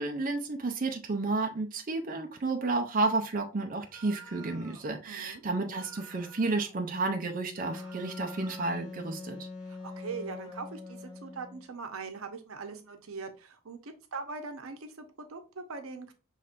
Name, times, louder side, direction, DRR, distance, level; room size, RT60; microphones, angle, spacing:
voice 1, 0.0-9.4, right 3 dB, 40° right, 4 dB, 0.5 m, -31 dB
sound 1, 3.9-4.9 5.7-6.8 7.5-8.9, right 3 dB, 20° right, 1.1 m, -51 dB
voice 2, 5.1-5.4 9.6-16.1, right 4 dB, 85° right, 6 dB, 0.7 m, -41 dB
Wind instrument woodwind instrument, 7.6-11.7, left 3 dB, 25° left, 1.4 m, -43 dB
5.8 x 3.2 x 2.5 m, 0.32 s
head